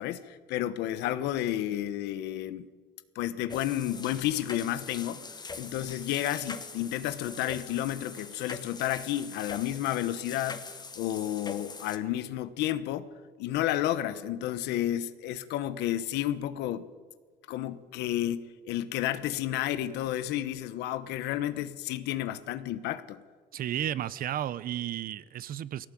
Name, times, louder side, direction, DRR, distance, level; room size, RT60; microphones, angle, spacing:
voice 1, 0.0-2.7 3.1-5.2 5.6-13.1 13.4-16.9 17.5-23.2, left 13 dB, 90° left, 13 dB, 1.2 m, -31 dB
sound 1, 3.5-12.0, left 4 dB, 25° left, 1.6 m, -43 dB
voice 2, 23.5-25.9, right 11 dB, 60° right, 18 dB, 0.9 m, -33 dB
19.0 x 17.5 x 9.3 m, 1.5 s
cardioid pair, 110°, 17 cm